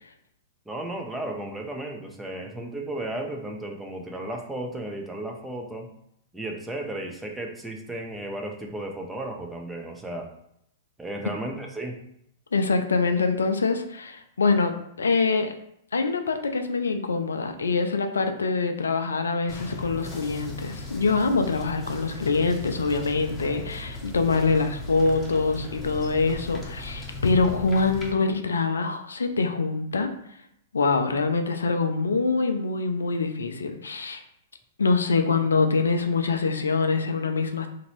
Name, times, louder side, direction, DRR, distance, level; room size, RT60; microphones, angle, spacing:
voice 1, 0.7-5.9 6.3-10.3 11.0-12.0, right 1 dB, 10° right, 1 dB, 0.5 m, -34 dB
voice 2, 12.5-15.5 15.9-30.1 30.7-34.2 34.8-37.7, left 4 dB, 80° left, 7 dB, 0.3 m, -24 dB
sound 1, 19.5-28.1, left 2 dB, 20° left, 0.8 m, -37 dB
2.9 x 2.6 x 3.0 m, 0.74 s
hypercardioid pair, 105°, 0 cm